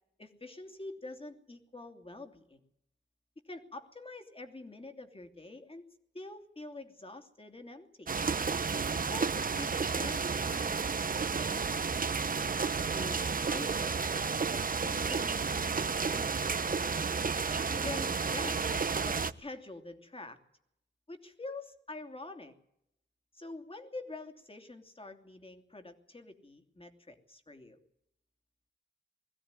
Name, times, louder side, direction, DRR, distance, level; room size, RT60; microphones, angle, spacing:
voice 1, 0.2-2.6 3.4-5.8 6.1-8.1 8.9-11.8 12.8-16.4 16.7-17.1 17.7-20.4 21.1-22.5 23.3-27.8, left 2 dB, 30° left, 6 dB, 2.9 m, -46 dB
sound 1, 8.1-19.3, right 5 dB, 50° right, 0.9 m, -32 dB
21.0 x 16.0 x 9.8 m, 0.79 s
wide cardioid pair, 85°, 19 cm